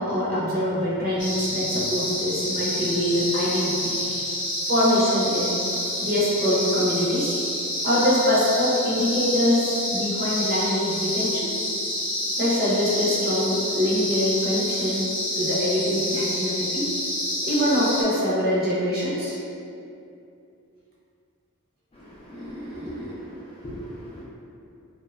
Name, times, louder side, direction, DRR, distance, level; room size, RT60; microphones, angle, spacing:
voice 1, 0.0-4.0 4.7-5.5 6.0-7.4 7.8-11.5 12.4-15.1 15.4-16.8 17.4-19.4 22.3-23.1, left 1 dB, 45° right, -7 dB, 0.6 m, -24 dB
sound 1, 1.2-18.0, left 1 dB, 55° left, 0.7 m, -28 dB
voice 2, 21.9-23.3 23.6-24.2, equal, 25° left, -6 dB, 0.4 m, -41 dB
2.8 x 2.1 x 2.3 m, 2.6 s
head